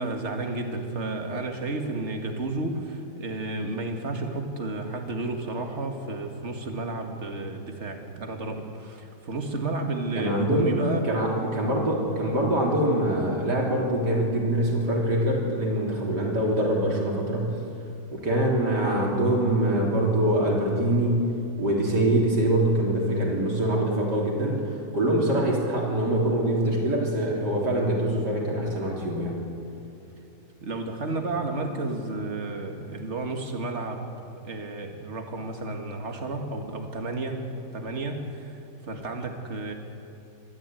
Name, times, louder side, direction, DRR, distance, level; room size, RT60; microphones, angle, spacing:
voice 1, 0.0-11.1 30.6-34.1 34.4-39.7, right 2 dB, 40° right, 4 dB, 2.1 m, -32 dB
voice 2, 10.2-10.8 11.1-17.5 18.1-21.3 21.6-24.7 24.9-29.4, right 1 dB, 75° right, -2 dB, 4.1 m, -24 dB
21.5 x 13.5 x 9.1 m, 2.8 s
omnidirectional pair, 1.8 m